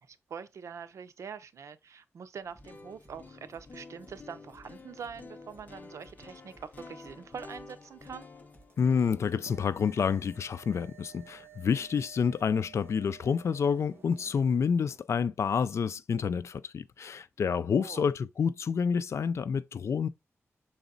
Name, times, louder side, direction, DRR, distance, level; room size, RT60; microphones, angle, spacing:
voice 1, 0.0-8.3 17.7-18.0, right 6 dB, 90° right, 0.6 m, -44 dB
sound 1, 2.4-12.4, left 3 dB, 35° left, 0.9 m, -51 dB
sound 2, 2.6-3.2 3.5-3.6 4.0-4.1 4.5-5.1 5.5-5.6 6.0-6.2 6.5-7.2 7.5-7.6 8.0-8.1 8.5-9.2 9.5-9.6 10.0-10.2 10.5-10.6, right 2 dB, 30° right, 2.2 m, -59 dB
sound 3, 8.6-15.0, right 10 dB, 50° right, 1.1 m, -55 dB
voice 2, 8.8-20.1, left 6 dB, 70° left, 0.4 m, -28 dB
6.0 x 4.0 x 3.9 m
wide cardioid pair, 140°, 5 cm